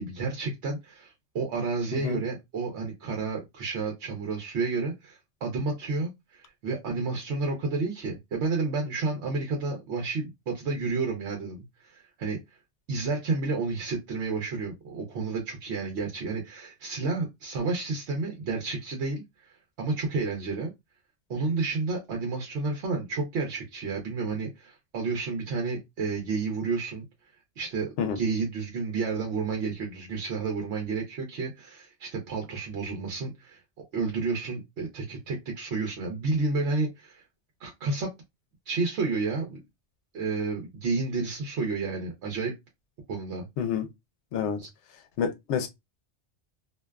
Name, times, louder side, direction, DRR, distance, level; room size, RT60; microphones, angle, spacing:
voice 1, 0.0-12.4 12.9-20.7 21.3-27.0 27.6-33.6 33.9-37.2 37.6-38.1 38.7-39.6 40.1-42.5 43.1-43.5 44.6-44.7, right 3 dB, 80° right, 1.0 m, -31 dB
voice 2, 45.2-45.7, left 7 dB, 85° left, 0.9 m, -28 dB
2.5 x 2.2 x 2.2 m
omnidirectional pair, 1.1 m